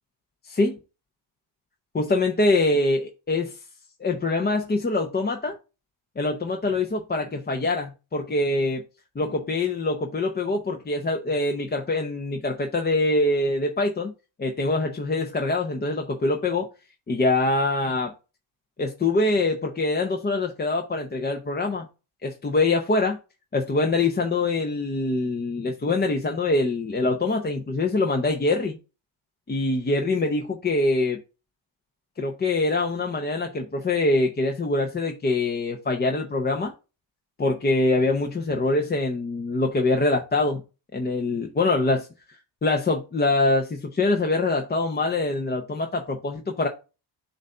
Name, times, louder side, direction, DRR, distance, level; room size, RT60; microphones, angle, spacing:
voice 1, 0.4-0.8 1.9-3.6 4.0-5.6 6.2-8.8 9.1-14.1 14.4-16.7 17.1-18.1 18.8-21.9 22.2-23.2 23.5-28.8 29.5-31.2 32.2-36.7 37.4-40.6 40.9-42.1 42.6-46.7, left 2 dB, 20° left, 0.7 m, -24 dB
7.9 x 2.7 x 5.4 m
cardioid pair, 125°, 50 cm